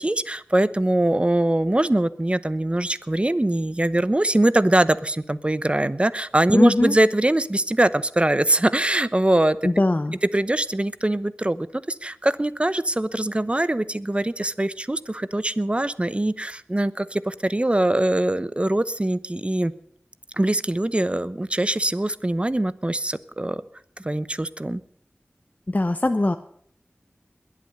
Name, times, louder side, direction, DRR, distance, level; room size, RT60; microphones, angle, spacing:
voice 1, 0.0-9.6 10.3-19.7 20.4-23.6 24.0-24.8, right 1 dB, 25° right, 16 dB, 0.9 m, -22 dB
voice 2, 6.5-6.9 9.6-10.1 25.7-26.4, left 2 dB, 40° left, 9 dB, 0.8 m, -20 dB
21.5 x 8.5 x 8.0 m, 0.62 s
wide cardioid pair, 55°, 4 cm